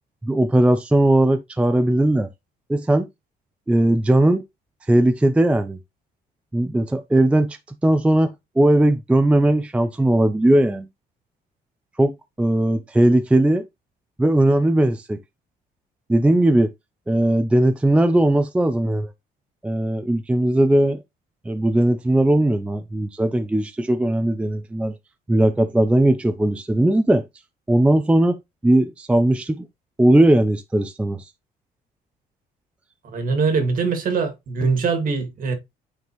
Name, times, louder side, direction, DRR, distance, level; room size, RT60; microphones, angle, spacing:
voice 1, 0.2-2.3 2.7-3.1 3.7-4.4 4.9-5.8 6.5-10.9 12.0-12.1 12.4-13.6 14.2-15.2 16.1-16.7 17.1-19.1 19.6-21.0 21.5-24.9 25.3-27.2 27.7-28.4 28.6-29.6 30.0-31.3, right 1 dB, 5° right, 0.4 m, -18 dB
voice 2, 33.0-35.5, right 4 dB, 55° right, 2.0 m, -22 dB
9.2 x 3.6 x 3.0 m
cardioid pair, 110°, 17 cm